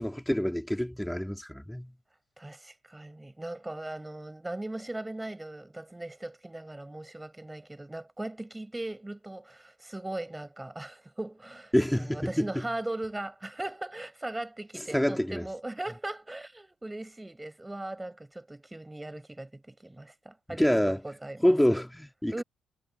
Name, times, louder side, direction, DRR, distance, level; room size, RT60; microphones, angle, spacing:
voice 1, 0.0-1.9 11.7-12.7 14.7-15.5 20.5-21.0 21.4-22.4, equal, 5° left, 2.5 m, -27 dB
voice 2, 2.4-21.8 22.3-22.4, right 1 dB, 10° right, 5.4 m, -39 dB
cardioid pair, 90°, 0 cm